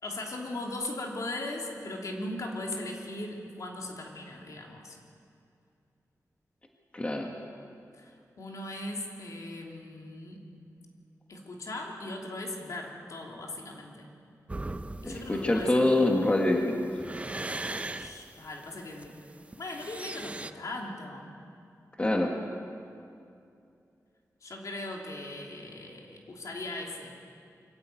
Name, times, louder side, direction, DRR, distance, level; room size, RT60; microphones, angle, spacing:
voice 1, 0.0-5.0 8.0-10.4 11.3-14.1 15.0-15.9 18.0-19.2 19.6-21.3 24.4-27.2, left 2 dB, 65° left, 0 dB, 3.1 m, -39 dB
voice 2, 6.9-7.3 15.0-16.8 22.0-22.3, left 1 dB, 20° left, 1 dB, 1.6 m, -25 dB
sound 1, 14.5-20.5, right 2 dB, 20° right, 0.7 m, -39 dB
24.0 x 14.0 x 9.1 m, 2.5 s
wide cardioid pair, 135°, 6 cm